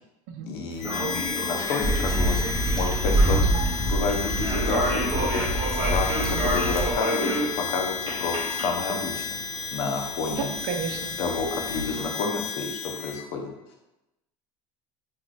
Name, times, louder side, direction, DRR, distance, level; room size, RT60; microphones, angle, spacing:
voice 1, 0.4-3.5 3.8-5.4 5.7-9.2 9.7-10.5 11.2-13.5, left 4 dB, 65° left, 2 dB, 0.8 m, -30 dB
sound 1, 0.7-12.0, right 1 dB, 25° right, 1.1 m, -32 dB
Harmonica, 0.8-13.2, left 6 dB, 45° left, 0.4 m, -33 dB
Stream / Traffic noise roadway noise / Trickle dribble, 1.8-6.9, right 1 dB, ahead, 0.9 m, -25 dB
voice 2, 10.3-11.2 11.9-12.0, right 6 dB, 70° right, 4 dB, 0.6 m, -33 dB
3.7 x 3.1 x 2.4 m, 0.93 s
hypercardioid pair, 90°, 18 cm